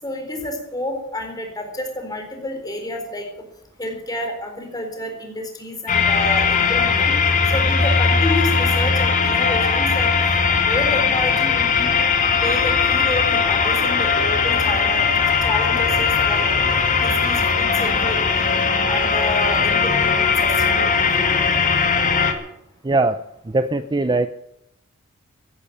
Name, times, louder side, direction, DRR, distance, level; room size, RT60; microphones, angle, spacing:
voice 1, 0.0-3.3 3.8-7.2 7.5-10.1 10.6-11.9 12.4-15.1 15.4-16.5 17.0-18.5 18.9-21.5, left 1 dB, 15° left, 3 dB, 4.2 m, -29 dB
sound 1, 5.9-22.3, left 5 dB, 35° left, 2.2 m, -19 dB
voice 2, 22.8-23.2 23.5-24.3, right 2 dB, 20° right, 12 dB, 0.5 m, -20 dB
15.0 x 11.0 x 8.6 m, 0.81 s
head